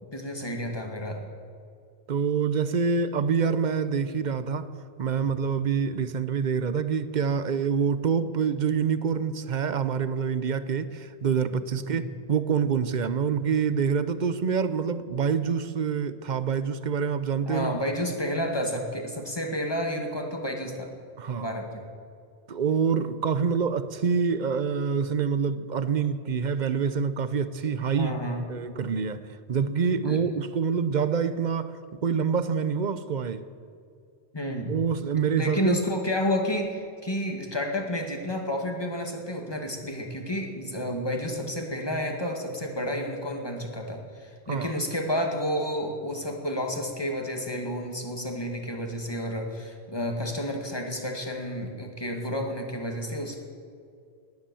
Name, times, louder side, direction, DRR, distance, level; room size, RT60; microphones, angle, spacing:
voice 1, 0.1-1.3 11.7-12.0 17.5-20.9 21.4-21.8 27.9-28.5 30.1-30.2 34.3-34.8 35.4-53.4, equal, 20° left, 2 dB, 2.0 m, -30 dB
voice 2, 2.1-4.7 5.0-17.7 21.2-21.5 22.5-28.2 28.5-29.2 29.5-33.4 34.7-35.8 44.5-44.7, right 6 dB, 45° right, 13 dB, 0.8 m, -26 dB
18.5 x 10.5 x 7.1 m, 2.3 s
omnidirectional pair, 1.1 m